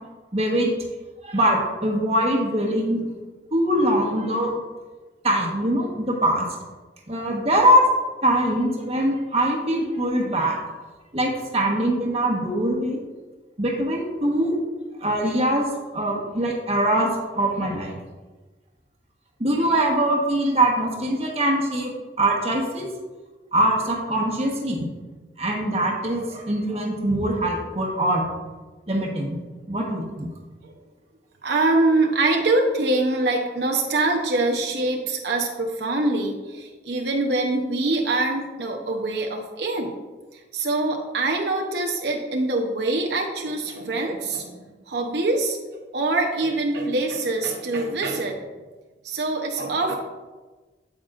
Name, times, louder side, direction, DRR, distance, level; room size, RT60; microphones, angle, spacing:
voice 1, 0.3-0.7 1.2-3.0 3.5-4.5 5.2-6.5 7.1-7.8 8.2-10.6 11.1-13.0 13.6-14.6 15.0-18.0 19.4-22.9 23.5-24.9 25.4-28.3 28.9-29.4 29.7-30.3, right 1 dB, 35° right, 0 dB, 1.2 m, -22 dB
voice 2, 31.4-39.9 40.3-44.6 44.9-45.6 45.9-48.4 49.0-50.0, right 2 dB, 75° right, 1 dB, 0.8 m, -24 dB
8.7 x 7.9 x 2.5 m, 1.3 s
head